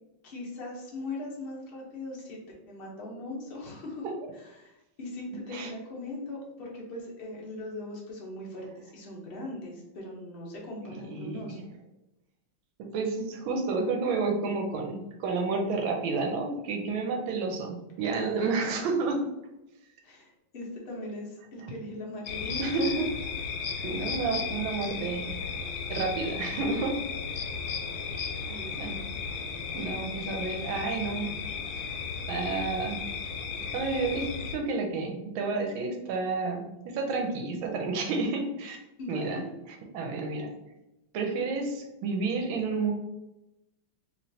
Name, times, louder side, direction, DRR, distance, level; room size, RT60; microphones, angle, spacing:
voice 1, 0.2-2.4 2.7-4.1 4.4-11.7 18.4-18.7 20.0-22.7 28.5-29.0 39.0-39.5, left 2 dB, 55° left, -3 dB, 0.6 m, -40 dB
voice 2, 10.8-11.6 12.8-19.2 22.6-23.1 23.8-25.4 25.9-27.0 28.8-29.0 29.7-31.3 32.3-33.1 33.7-38.8 39.1-39.4 39.7-40.5 41.1-42.9, right 4 dB, 85° right, 3 dB, 1.4 m, -30 dB
sound 1, 22.2-34.6, left 5 dB, 80° left, 1.3 m, -35 dB
3.1 x 3.0 x 2.7 m, 0.93 s
omnidirectional pair, 2.1 m